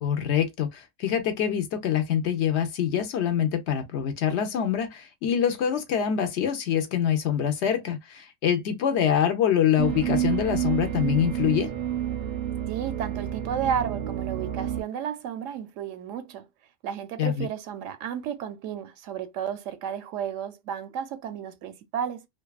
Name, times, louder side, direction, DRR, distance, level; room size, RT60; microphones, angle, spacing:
voice 1, 0.0-11.7 17.2-17.5, left 9 dB, 65° left, 0.9 m, -25 dB
sound 1, 9.8-14.8, right 11 dB, 50° right, 0.5 m, -29 dB
voice 2, 12.7-16.5 16.8-22.3, right 8 dB, 90° right, 0.9 m, -32 dB
2.6 x 2.3 x 2.2 m
omnidirectional pair, 1.3 m